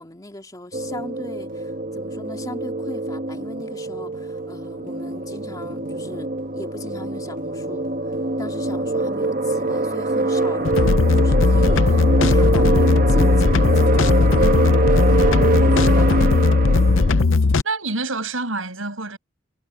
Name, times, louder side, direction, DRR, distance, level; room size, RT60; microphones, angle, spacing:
voice 1, 0.0-7.9 8.4-10.7 11.1-16.1, left 1 dB, 20° left, 2.7 m, -38 dB
sound 1, 0.7-17.2, right 2 dB, 45° right, 1.5 m, -24 dB
sound 2, 10.6-17.6, left 3 dB, 75° left, 0.7 m, -17 dB
voice 2, 17.6-19.2, right 3 dB, 85° right, 7.3 m, -27 dB
head